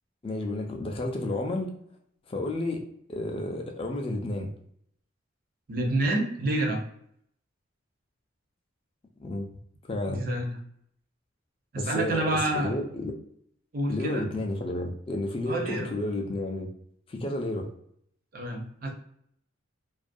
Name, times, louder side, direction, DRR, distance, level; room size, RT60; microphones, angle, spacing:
voice 1, 0.2-1.7 2.3-2.8 3.1-4.5 9.2-9.5 9.9-10.3 11.8-13.1 13.9-16.7 17.1-17.7, left 1 dB, 25° left, 2 dB, 0.3 m, -31 dB
voice 2, 5.7-6.8 10.1-10.6 11.7-12.8 13.7-14.3 15.5-15.9 18.3-18.9, right 1 dB, 45° right, 1 dB, 0.5 m, -28 dB
2.4 x 2.1 x 2.5 m, 0.68 s
head